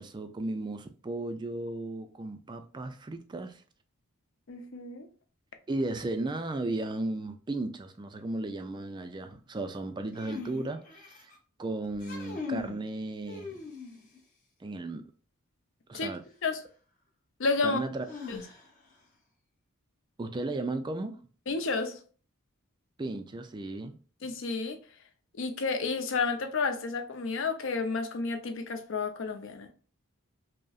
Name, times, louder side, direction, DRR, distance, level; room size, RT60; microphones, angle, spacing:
voice 1, 0.0-3.6 5.7-11.3 11.6-13.6 14.6-15.0 15.9-16.2 17.6-18.0 20.2-21.3 23.0-24.0, right 2 dB, 20° right, 0.3 m, -35 dB
voice 2, 4.5-5.1 15.9-16.1 16.4-16.6 17.4-17.8 18.3-18.4 21.5-22.0 24.2-24.8 25.4-29.7, left 4 dB, 60° left, 0.5 m, -31 dB
sound 1, 10.1-11.3 11.9-12.8 13.3-14.2 16.1-16.2 18.0-18.9, left 4 dB, 35° left, 0.9 m, -40 dB
5.2 x 2.1 x 2.3 m
head